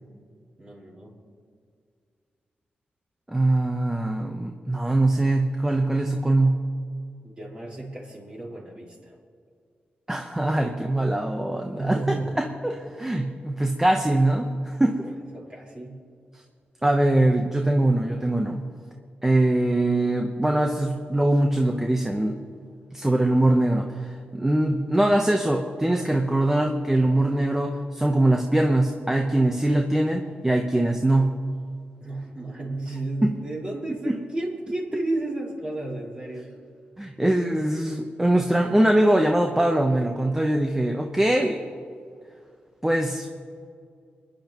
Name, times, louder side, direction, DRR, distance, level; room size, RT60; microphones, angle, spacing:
voice 1, 0.6-1.1 7.2-9.2 11.8-12.4 15.0-16.0 32.0-36.6, right 2 dB, 30° right, -3 dB, 4.4 m, -32 dB
voice 2, 3.3-6.6 10.1-15.0 16.8-18.6 19.2-22.4 22.9-31.3 33.2-33.3 34.1-34.2 37.0-41.6 42.8-43.3, right 1 dB, 10° right, 2 dB, 0.9 m, -22 dB
29.5 x 10.5 x 3.0 m, 2.3 s
cardioid pair, 85°, 4 cm